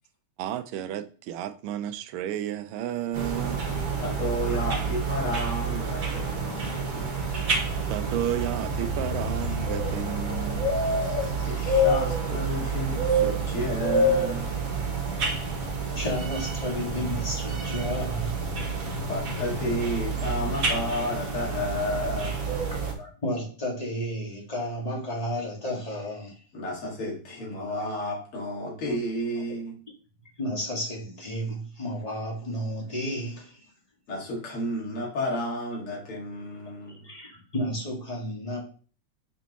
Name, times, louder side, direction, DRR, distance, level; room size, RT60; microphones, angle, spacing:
voice 1, 0.4-3.6 7.9-10.8, right 11 dB, 85° right, 1.5 m, -32 dB
sound 1, 3.1-22.9, right 2 dB, 45° right, 1.5 m, -28 dB
voice 2, 4.0-7.1 11.5-14.6 19.1-22.4 26.5-29.7 34.1-37.1, left 1 dB, 85° left, 2.8 m, -32 dB
voice 3, 15.9-18.4 23.0-26.4 30.4-33.7 36.9-38.6, equal, 20° left, 1.6 m, -32 dB
5.2 x 4.6 x 4.0 m
omnidirectional pair, 2.3 m